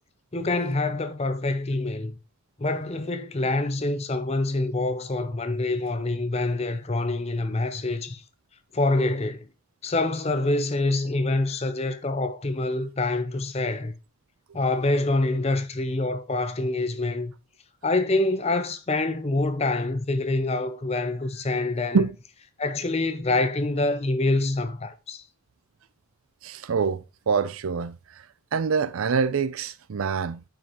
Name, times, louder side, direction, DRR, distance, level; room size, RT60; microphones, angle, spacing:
voice 1, 0.3-2.2 2.6-8.2 8.7-9.5 9.8-13.9 14.5-17.3 17.8-22.0 22.6-25.2, left 2 dB, 30° left, 0.6 m, -26 dB
voice 2, 26.4-28.0 28.5-30.5, right 5 dB, 80° right, 0.5 m, -25 dB
8.9 x 5.3 x 3.0 m
head